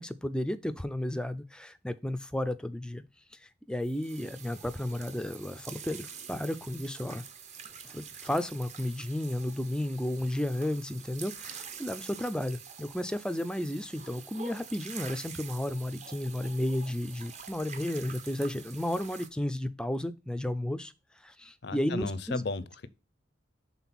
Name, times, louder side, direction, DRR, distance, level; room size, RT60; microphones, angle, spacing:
voice 1, 0.0-3.0 3.3-7.2 7.8-22.4, left 1 dB, 5° left, 0.4 m, -33 dB
sound 1, 3.8-19.3, right 6 dB, 35° right, 0.8 m, -46 dB
voice 2, 21.6-22.9, left 3 dB, 55° left, 0.6 m, -34 dB
6.0 x 3.7 x 5.8 m
head